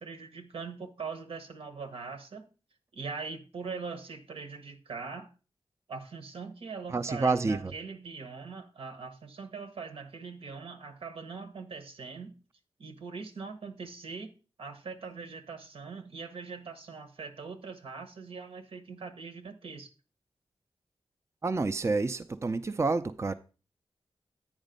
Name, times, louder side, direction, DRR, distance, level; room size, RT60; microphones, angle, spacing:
voice 1, 0.0-2.4 2.9-5.3 5.9-12.4 12.8-14.3 14.6-19.9, right 5 dB, 85° right, 1.3 m, -41 dB
voice 2, 6.9-7.7 21.4-23.3, right 3 dB, 30° right, 0.5 m, -28 dB
9.0 x 5.2 x 5.2 m
wide cardioid pair, 80°, 9 cm